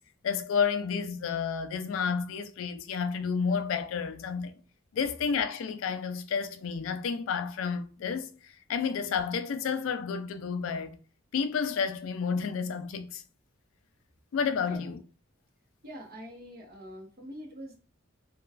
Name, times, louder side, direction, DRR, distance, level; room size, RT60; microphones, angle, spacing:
voice 1, 0.2-4.5 4.9-11.0 11.3-13.2 14.3-15.0, left 6 dB, 75° left, 0.3 m, -31 dB
voice 2, 15.8-17.8, equal, 45° right, 0.9 m, -44 dB
3.0 x 2.2 x 2.3 m
head